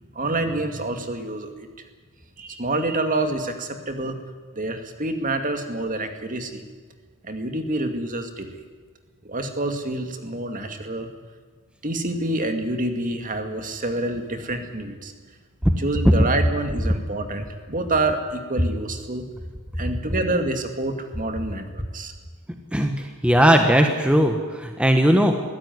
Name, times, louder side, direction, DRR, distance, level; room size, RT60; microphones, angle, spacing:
voice 1, 0.1-1.7 2.4-4.2 4.5-6.6 7.2-8.6 9.2-11.1 11.8-15.1 15.8-19.3 19.8-22.1, right 2 dB, 35° right, 6 dB, 2.3 m, -27 dB
voice 2, 23.2-24.3 24.6-25.3, equal, 5° right, 4 dB, 1.3 m, -17 dB
23.0 x 16.0 x 9.6 m, 1.5 s
head